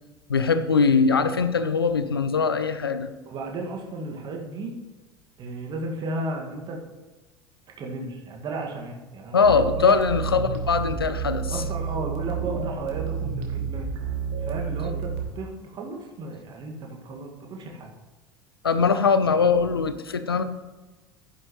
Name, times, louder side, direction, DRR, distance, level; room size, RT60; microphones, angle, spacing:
voice 1, 0.3-3.1 9.3-11.6 18.6-20.4, left 5 dB, 80° left, 12 dB, 0.6 m, -21 dB
voice 2, 3.3-4.7 5.4-6.8 7.8-10.0 11.5-13.9 14.4-17.9, right 2 dB, 40° right, 1 dB, 2.1 m, -34 dB
sound 1, 9.4-15.2, right 6 dB, 55° right, 1.9 m, -30 dB
12.0 x 10.0 x 3.2 m, 1.2 s
figure-of-eight pair, 70°, 12 cm